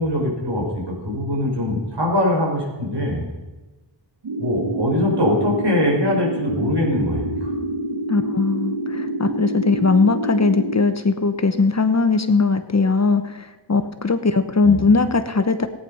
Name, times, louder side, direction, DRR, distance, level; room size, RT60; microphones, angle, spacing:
voice 1, 0.0-3.3 4.4-7.5 14.6-14.9, left 1 dB, 65° right, -1 dB, 5.1 m, -22 dB
sound 1, 4.2-10.8, right 1 dB, 80° right, 1.8 m, -27 dB
voice 2, 8.1-15.7, left 4 dB, 35° left, 9 dB, 1.0 m, -19 dB
17.5 x 9.6 x 5.6 m, 1.2 s
wide cardioid pair, 95°, 45 cm